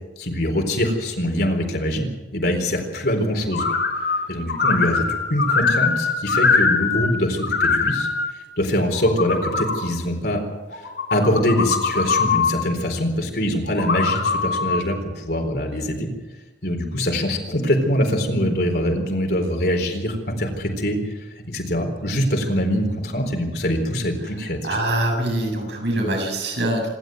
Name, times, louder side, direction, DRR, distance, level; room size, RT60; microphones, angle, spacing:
voice 1, 0.2-2.1 2.3-3.6 4.3-5.0 5.3-8.1 8.6-10.4 10.7-10.8 11.1-16.1 16.6-21.0 21.5-24.8, equal, 60° left, 3 dB, 4.2 m, -23 dB
sound 1, 3.5-4.2 4.5-7.1 7.4-8.3 8.8-9.8 10.7-12.5 13.7-14.8, left 4 dB, 90° left, 4.1 m, -22 dB
voice 2, 24.6-26.9, right 1 dB, 75° right, 1 dB, 7.4 m, -23 dB
26.5 x 12.5 x 7.9 m, 1.2 s
head